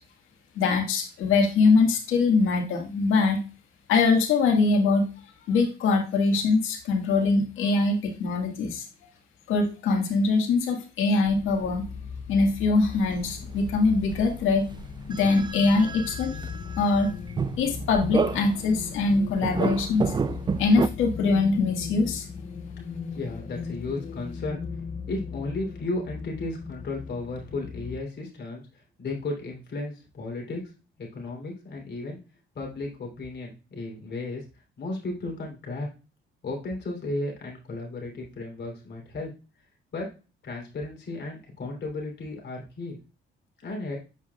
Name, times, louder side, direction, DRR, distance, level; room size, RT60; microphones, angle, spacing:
voice 1, 0.6-3.4 3.9-5.1 5.5-8.9 9.5-11.9 12.3-14.7 15.1-16.4 16.8-17.1 17.6-20.1 20.6-22.3, left 3 dB, 85° left, 3 dB, 1.8 m, -23 dB
sound 1, 11.2-28.0, left 5 dB, 40° left, 0.8 m, -38 dB
sound 2, 12.8-14.4 14.7-18.8 19.3-20.9, right 5 dB, 25° right, 0.4 m, -31 dB
voice 2, 22.8-24.6 25.1-30.6 31.0-32.2 32.6-34.4 34.8-35.9 36.4-39.3 39.9-40.1 40.4-43.0 43.6-44.0, left 2 dB, 60° left, 0 dB, 3.3 m, -34 dB
7.8 x 5.5 x 2.3 m, 0.32 s
cardioid pair, 90°, 20 cm